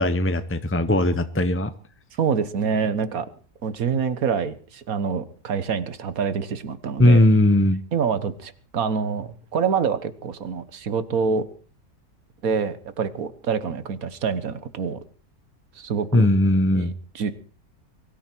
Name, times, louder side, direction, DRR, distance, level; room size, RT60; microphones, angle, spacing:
voice 1, 0.0-1.7 7.0-7.8 16.1-16.9, left 1 dB, 15° left, 10 dB, 0.5 m, -18 dB
voice 2, 2.2-3.3 3.6-7.2 7.9-11.5 12.4-15.0 15.8-16.3 16.7-17.3, right 6 dB, 65° right, 13 dB, 1.6 m, -26 dB
23.0 x 13.0 x 4.5 m, 0.42 s
omnidirectional pair, 1.6 m